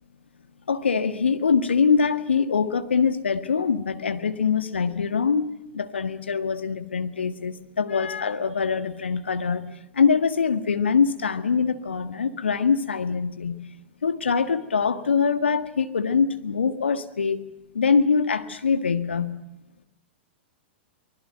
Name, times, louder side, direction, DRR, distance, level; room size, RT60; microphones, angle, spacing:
voice 1, 0.7-13.6 14.0-17.4 17.7-19.4, left 5 dB, 70° left, 10 dB, 1.8 m, -23 dB
24.0 x 21.0 x 9.2 m, 0.88 s
figure-of-eight pair, 100°, 6 cm